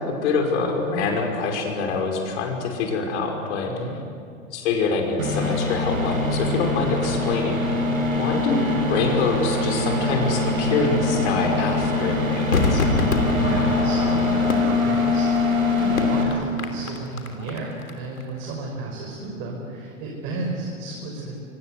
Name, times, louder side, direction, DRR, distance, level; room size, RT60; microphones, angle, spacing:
voice 1, 0.0-3.8 4.5-7.8 8.1-12.8, left 4 dB, 55° left, 2 dB, 5.6 m, -25 dB
sound 1, 5.2-16.2, left 2 dB, 85° right, 6.9 m, -23 dB
Crowd / Fireworks, 12.5-17.9 18.2-18.3, left 3 dB, 85° left, 3.4 m, -27 dB
voice 2, 13.4-21.4, right 2 dB, 45° right, -1 dB, 5.7 m, -32 dB
26.5 x 24.5 x 8.2 m, 2.4 s
hypercardioid pair, 105°, 40 cm